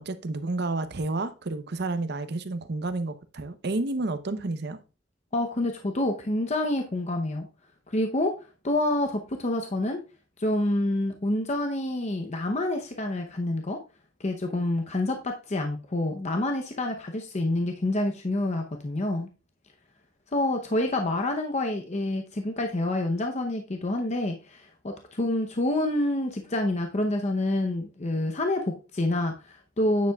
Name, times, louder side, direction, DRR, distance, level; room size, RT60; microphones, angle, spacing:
voice 1, 0.1-4.8, right 2 dB, 60° right, 0.7 m, -30 dB
voice 2, 5.3-7.5 7.9-8.3 8.6-10.0 10.4-13.8 14.2-19.3 20.3-30.1, left 1 dB, 35° left, 0.7 m, -27 dB
9.3 x 7.2 x 2.3 m
head